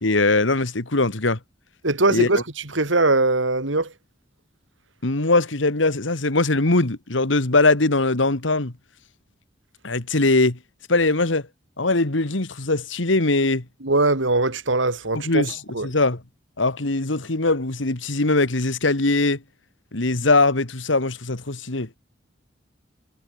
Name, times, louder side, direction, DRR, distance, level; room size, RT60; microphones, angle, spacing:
voice 1, 0.0-1.4 2.1-2.3 5.0-8.7 9.8-10.6 10.9-11.4 11.8-13.6 15.1-16.2 16.6-19.4 19.9-21.9, left 2 dB, 80° left, 2.0 m, -21 dB
voice 2, 1.8-2.4 2.7-3.9 13.8-15.5 15.7-15.9, right 2 dB, 80° right, 3.1 m, -21 dB
head